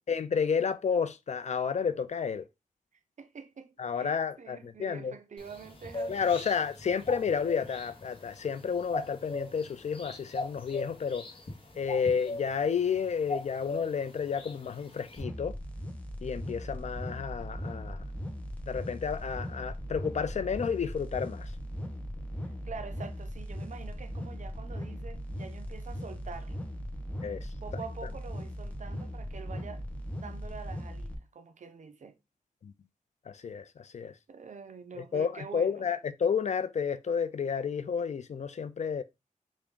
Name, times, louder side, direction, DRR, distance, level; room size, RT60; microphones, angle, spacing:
voice 1, 0.1-2.5 3.8-5.1 6.1-11.3 11.8-15.6 16.2-18.0 18.7-21.5 27.2-27.5 32.6-32.7 33.3-34.1 35.1-39.0, left 6 dB, 55° left, 0.4 m, -31 dB
voice 2, 3.2-6.5 22.4-26.6 27.6-29.8 30.2-32.2 34.3-35.9, right 5 dB, 65° right, 0.5 m, -46 dB
sound 1, 5.4-15.2, left 2 dB, 40° left, 1.0 m, -41 dB
sound 2, 15.2-31.2, equal, 10° left, 0.7 m, -39 dB
3.5 x 2.5 x 3.5 m
wide cardioid pair, 115°, 14 cm